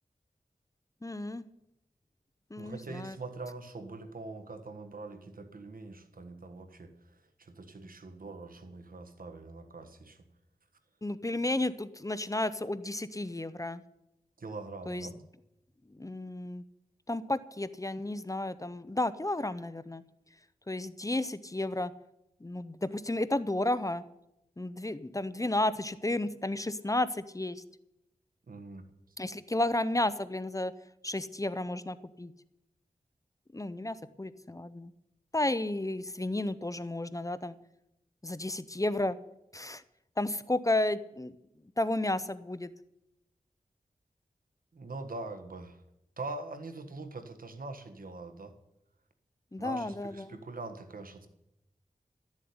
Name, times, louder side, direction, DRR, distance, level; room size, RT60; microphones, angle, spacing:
voice 1, 1.0-1.4 2.5-3.1 11.0-13.8 14.9-15.1 16.0-16.6 17.1-20.0 20.7-21.9 22.4-24.0 24.6-27.6 29.2-30.7 31.0-32.3 33.5-34.9 35.3-37.6 38.2-39.2 39.5-39.8 40.2-41.4 41.8-42.7 49.5-50.3, left 1 dB, 25° left, 14 dB, 0.7 m, -32 dB
voice 2, 2.6-10.3 14.4-15.2 28.5-28.8 29.1-29.2 44.7-45.8 46.2-48.5 49.6-51.3, right 3 dB, 75° right, 8 dB, 1.4 m, -43 dB
13.0 x 7.4 x 9.6 m, 0.85 s
wide cardioid pair, 60°, 15 cm